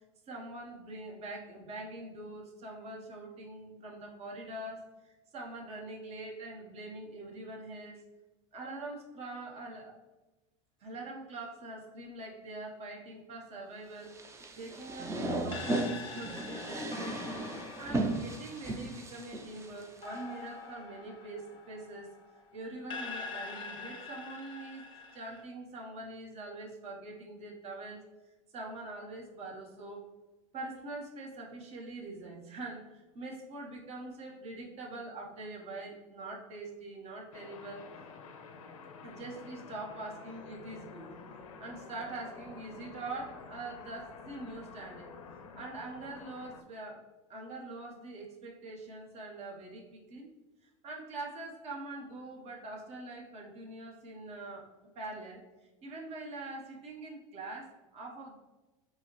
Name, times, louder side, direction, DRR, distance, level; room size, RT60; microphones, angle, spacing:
voice 1, 0.3-8.0 8.5-9.9 10.8-14.2 14.6-22.1 22.5-24.8 25.1-28.0 28.5-30.1 30.5-37.9 39.0-41.1 41.6-45.1 45.6-47.0 47.3-50.3 50.6-54.7 54.9-55.5 55.8-58.3, right 2 dB, 40° right, -1 dB, 0.9 m, -44 dB
sound 1, 14.1-20.2, right 2 dB, 15° right, 0.4 m, -36 dB
sound 2, 15.5-22.4 22.9-25.4, left 4 dB, 30° left, 0.7 m, -45 dB
sound 3, 37.3-46.6, left 5 dB, 90° left, 0.4 m, -49 dB
4.7 x 2.0 x 3.0 m, 1.1 s
hypercardioid pair, 100°, 17 cm